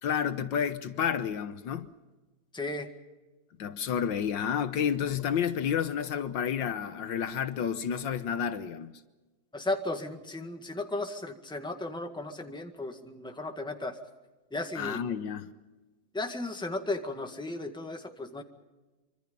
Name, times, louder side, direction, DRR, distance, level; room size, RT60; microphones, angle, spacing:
voice 1, 0.0-1.9 3.6-8.9 14.7-15.5, left 8 dB, 70° left, 1.6 m, -30 dB
voice 2, 2.5-2.9 9.5-14.0 14.5-15.0 16.1-18.4, left 2 dB, ahead, 1.7 m, -35 dB
25.5 x 24.5 x 5.4 m
omnidirectional pair, 2.1 m